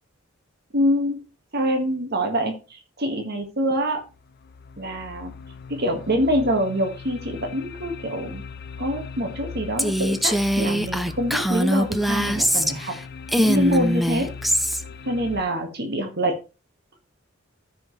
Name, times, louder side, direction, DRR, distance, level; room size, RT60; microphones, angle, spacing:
voice 1, 0.7-1.2 1.5-4.0 4.8-5.3 5.7-8.4 8.8-12.9 13.4-14.3 15.1-16.4, equal, 50° right, 4 dB, 1.7 m, -25 dB
sound 1, 3.4-3.5 4.1-15.4, left 5 dB, 50° left, 0.5 m, -39 dB
Female speech woman speaking, 9.8-13.0 13.3-14.8, equal, ahead, 0.5 m, -22 dB
14.0 x 5.4 x 3.2 m, 0.31 s
head